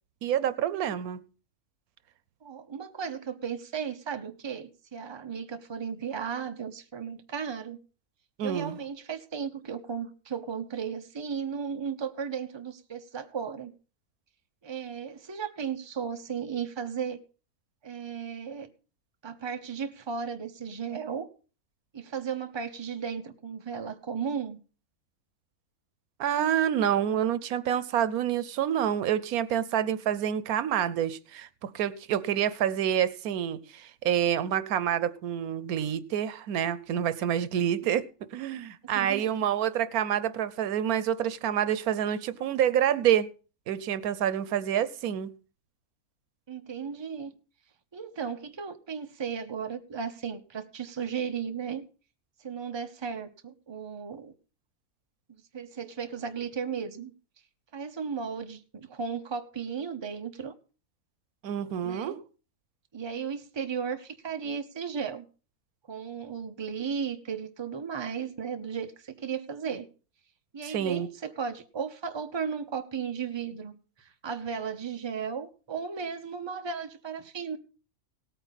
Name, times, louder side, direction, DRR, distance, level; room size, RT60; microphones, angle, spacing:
voice 1, 0.2-1.2 8.4-8.8 26.2-38.0 38.3-43.3 43.7-45.3 61.4-62.2 70.6-71.1, right 10 dB, 90° right, 15 dB, 1.2 m, -27 dB
voice 2, 2.4-7.8 8.4-13.7 14.6-17.2 17.8-18.7 19.2-21.3 21.9-24.6 37.8-37.9 38.9-39.3 46.5-47.3 47.9-51.8 52.4-54.3 55.5-57.1 57.7-60.5 61.8-62.2 62.9-65.2 65.9-69.9 70.5-77.6, right 6 dB, 25° right, 7 dB, 0.8 m, -35 dB
17.5 x 9.0 x 4.1 m, 0.37 s
omnidirectional pair, 1.5 m